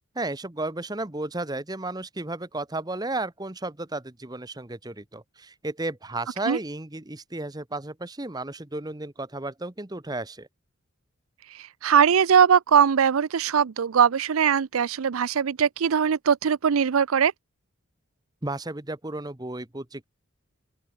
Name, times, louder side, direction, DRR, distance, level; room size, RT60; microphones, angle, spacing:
voice 1, 0.1-10.5 18.4-20.0, right 2 dB, 20° right, 1.1 m, -33 dB
voice 2, 11.5-17.3, right 7 dB, 90° right, 0.5 m, -21 dB
head